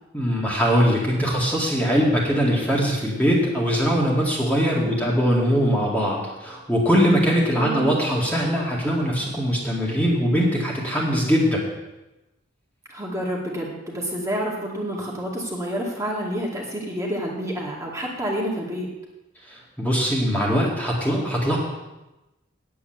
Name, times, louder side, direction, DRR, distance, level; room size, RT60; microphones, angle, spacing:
voice 1, 0.1-11.6 19.5-21.6, equal, 10° left, -4 dB, 2.1 m, -21 dB
voice 2, 7.5-7.9 12.9-18.9, equal, 15° right, -3 dB, 2.1 m, -29 dB
8.6 x 7.8 x 9.1 m, 1.0 s
head